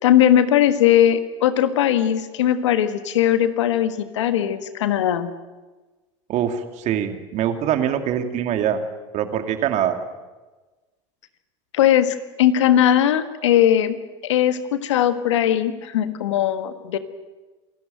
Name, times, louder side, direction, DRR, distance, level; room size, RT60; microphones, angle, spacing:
voice 1, 0.0-5.3 11.7-14.0 14.2-17.0, left 11 dB, 85° left, 10 dB, 1.5 m, -19 dB
voice 2, 6.3-8.8 9.1-10.0, right 10 dB, 55° right, 7 dB, 2.4 m, -23 dB
27.0 x 13.0 x 9.1 m, 1.2 s
hypercardioid pair, 95°, 15 cm